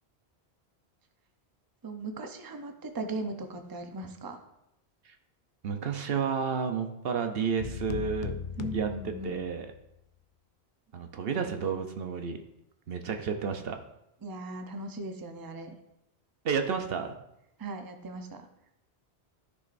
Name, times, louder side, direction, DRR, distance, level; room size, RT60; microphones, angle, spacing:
voice 1, 1.8-4.4 8.6-9.4 14.2-15.7 17.6-18.4, right 2 dB, 25° right, 6 dB, 0.6 m, -38 dB
voice 2, 5.6-8.3 8.7-9.7 10.9-12.4 12.9-13.8 16.4-17.1, right 6 dB, 65° right, 6 dB, 0.9 m, -31 dB
sound 1, 7.6-9.8, left 8 dB, 60° left, 0.6 m, -38 dB
14.0 x 6.1 x 2.6 m, 0.85 s
omnidirectional pair, 1.1 m